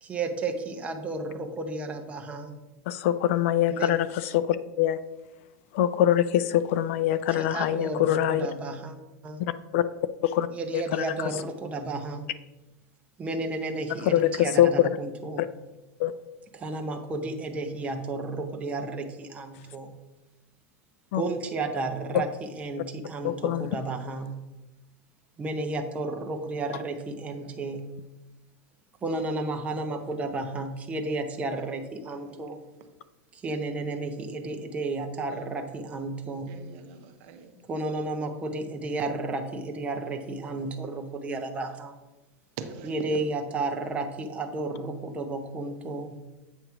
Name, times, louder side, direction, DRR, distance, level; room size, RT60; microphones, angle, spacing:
voice 1, 0.0-2.6 3.7-3.9 7.3-9.0 9.2-9.4 10.5-12.3 13.2-15.5 16.5-20.0 21.1-24.4 25.4-27.9 29.0-32.6 33.3-36.6 37.7-42.0 42.8-46.2, right 2 dB, 15° right, 4 dB, 0.7 m, -32 dB
voice 2, 2.9-4.1 4.3-5.0 5.7-8.5 9.7-9.8 10.2-10.5 10.7-11.0 14.0-14.9 16.0-16.1 21.1-21.2 23.2-23.8, left 12 dB, 60° left, 15 dB, 0.4 m, -23 dB
voice 3, 26.7-27.7 31.6-31.7 32.2-32.4 35.3-35.7 36.5-37.6 40.4-40.7 42.6-43.2, right 6 dB, 50° right, 7 dB, 0.8 m, -44 dB
8.0 x 3.0 x 5.8 m, 1.0 s
supercardioid pair, 155°, 8 cm